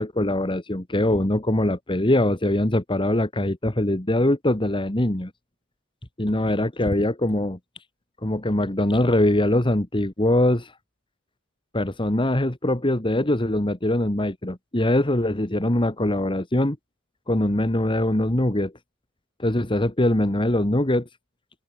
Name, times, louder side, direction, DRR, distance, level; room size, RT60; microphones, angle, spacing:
voice 1, 0.0-5.3 6.2-7.6 8.2-10.7 11.7-16.8 17.3-18.7 19.4-21.1, left 1 dB, 25° left, 1.8 m, -22 dB
open air
head